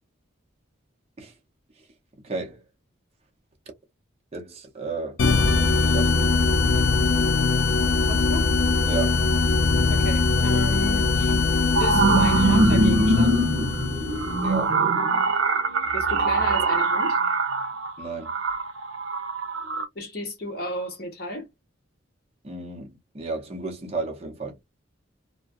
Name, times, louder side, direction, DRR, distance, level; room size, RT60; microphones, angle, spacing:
voice 1, 2.2-2.6 4.3-5.2 5.9-6.4 8.9-9.2 14.4-14.7 18.0-18.3 22.4-24.6, right 3 dB, 30° right, 0.7 m, -33 dB
sound 1, 5.2-14.6, left 3 dB, 75° left, 0.6 m, -22 dB
voice 2, 8.1-8.5 9.9-11.4 11.8-13.4 15.9-17.2 19.9-21.5, left 1 dB, 50° left, 1.0 m, -33 dB
sound 2, 10.5-10.6 11.3-19.8, right 3 dB, 80° right, 0.7 m, -23 dB
2.4 x 2.2 x 2.5 m
head